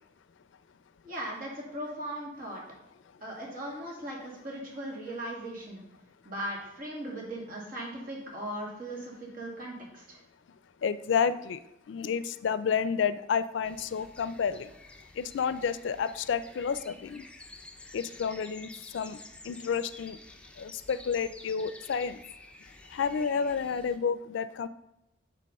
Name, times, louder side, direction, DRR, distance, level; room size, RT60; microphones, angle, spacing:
voice 1, 1.0-2.6 3.2-5.8 6.2-10.2, right 1 dB, 50° right, -3 dB, 2.0 m, -38 dB
voice 2, 10.8-11.6 11.9-14.7 15.2-17.2 17.9-19.2 19.4-20.2 20.6-22.2 22.9-24.7, left 6 dB, 80° left, 14 dB, 0.4 m, -30 dB
sound 1, 13.6-24.0, left 2 dB, 5° left, 0.5 m, -50 dB
7.6 x 3.6 x 5.4 m, 0.88 s
head